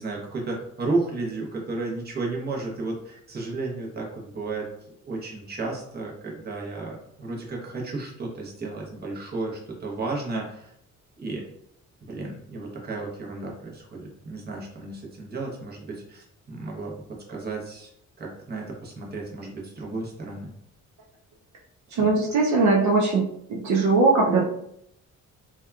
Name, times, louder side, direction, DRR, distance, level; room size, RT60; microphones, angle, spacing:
voice 1, 0.0-4.7 5.0-10.7 11.2-11.4 12.0-17.9 18.2-20.5, right 3 dB, 35° right, -2 dB, 0.8 m, -33 dB
voice 2, 21.9-23.2 23.5-24.5, right 3 dB, 70° right, -2 dB, 0.6 m, -20 dB
2.8 x 2.2 x 2.3 m, 0.74 s
cardioid pair, 90°, 30 cm